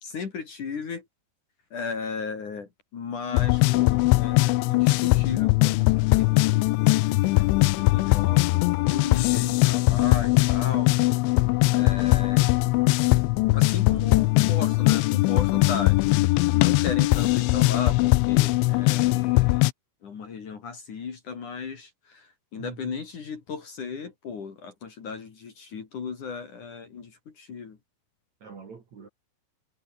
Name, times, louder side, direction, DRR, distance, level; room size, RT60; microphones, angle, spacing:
voice 1, 0.0-1.1 1.7-10.9 11.7-12.5 13.5-19.6 20.0-27.8, left 5 dB, 45° left, 3.8 m, -36 dB
sound 1, 3.3-19.7, left 21 dB, 80° left, 2.8 m, -21 dB
voice 2, 11.6-12.0 22.6-23.0 28.4-29.1, right 6 dB, 40° right, 3.4 m, -44 dB
omnidirectional pair, 5.8 m